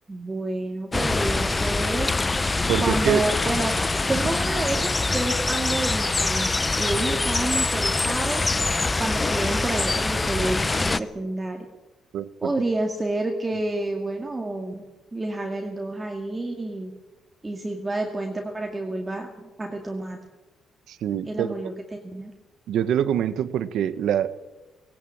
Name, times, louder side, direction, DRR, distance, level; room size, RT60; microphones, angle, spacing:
voice 1, 0.1-2.1 2.8-3.8 4.1-8.4 8.9-11.7 12.4-16.9 17.4-20.2 21.3-22.3, right 2 dB, 15° right, 2 dB, 2.1 m, -29 dB
sound 1, 0.9-11.0, left 3 dB, 15° left, 0.7 m, -24 dB
voice 2, 2.7-3.2 12.1-12.5 20.9-21.5 22.7-24.3, right 10 dB, 70° right, 14 dB, 1.3 m, -25 dB
19.0 x 18.0 x 8.7 m, 1.1 s
cardioid pair, 155°, 0 cm